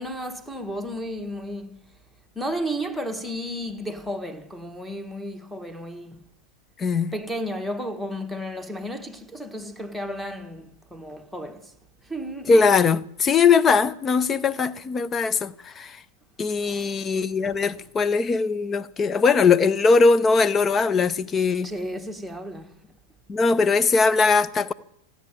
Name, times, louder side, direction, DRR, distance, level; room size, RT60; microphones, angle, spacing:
voice 1, 0.0-1.8 2.3-6.2 7.1-11.7 12.0-12.6 16.6-17.1 17.5-17.6 21.6-22.7, equal, ahead, 1.4 m, -33 dB
voice 2, 6.8-7.1 12.5-16.0 16.4-21.7 23.3-24.7, left 4 dB, 20° left, 0.7 m, -20 dB
15.5 x 9.5 x 9.0 m
figure-of-eight pair, 90°, 0 cm